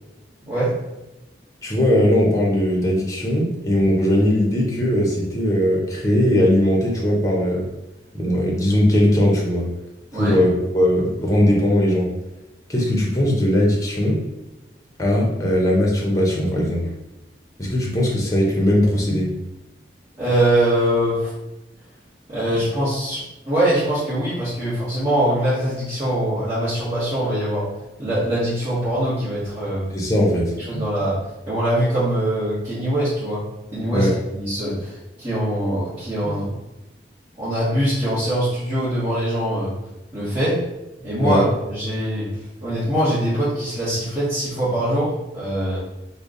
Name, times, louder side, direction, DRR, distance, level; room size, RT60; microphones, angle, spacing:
voice 1, 1.6-7.7 8.1-9.7 10.1-12.1 12.7-14.2 15.0-16.8 17.6-19.4 29.9-30.4 30.7-30.9 33.9-34.1 36.2-36.4 41.2-41.4, left 1 dB, 20° left, -2 dB, 0.7 m, -19 dB
voice 2, 20.2-21.3 22.3-27.7 28.0-29.9 30.7-31.2 31.5-33.4 33.7-34.1 34.3-36.5 37.4-39.7 40.1-40.6 41.0-42.3 42.6-45.8, right 1 dB, 30° right, -13 dB, 1.3 m, -22 dB
3.3 x 2.2 x 3.8 m, 0.97 s
head